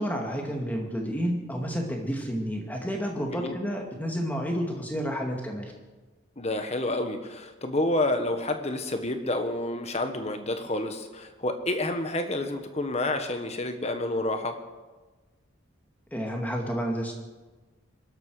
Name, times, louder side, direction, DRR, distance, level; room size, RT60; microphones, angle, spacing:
voice 1, 0.0-5.7 16.1-17.1, equal, 10° left, 1 dB, 2.1 m, -30 dB
voice 2, 6.4-14.6, left 1 dB, 30° left, 7 dB, 1.3 m, -29 dB
22.5 x 12.5 x 5.0 m, 1.3 s
head